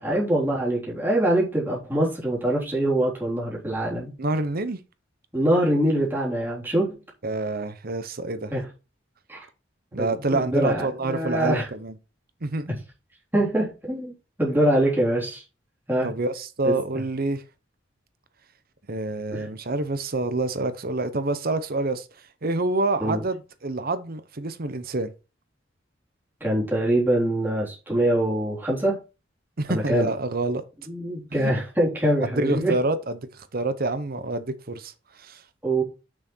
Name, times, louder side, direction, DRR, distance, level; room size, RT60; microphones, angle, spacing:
voice 1, 0.0-4.1 5.3-7.0 8.5-8.6 9.3-9.4 10.0-11.7 12.7-12.8 13.3-14.1 14.4-15.4 15.9-16.1 16.6-17.0 19.3-19.5 23.0-23.2 26.4-29.0 29.7-30.1 30.9-32.7 35.6-35.8, right 1 dB, 10° right, 3.7 m, -24 dB
voice 2, 4.2-4.8 7.2-8.5 9.9-11.9 12.4-12.7 16.0-17.4 18.9-22.1 22.4-25.1 29.6-30.6 31.3-31.5 32.2-34.9 35.2-35.4, right 2 dB, 50° right, 0.9 m, -27 dB
6.4 x 6.3 x 4.5 m
head